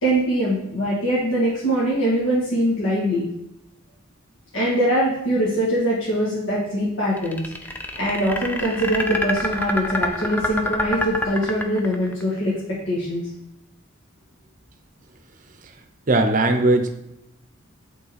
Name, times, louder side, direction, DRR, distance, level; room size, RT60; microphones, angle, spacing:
voice 1, 0.0-3.3 4.5-13.2, equal, 70° left, -7 dB, 1.7 m, -23 dB
sound 1, 7.2-12.2, left 1 dB, 10° left, 0.4 m, -26 dB
voice 2, 16.1-16.9, right 2 dB, 40° right, 6 dB, 0.7 m, -18 dB
8.2 x 3.9 x 4.2 m, 0.85 s
head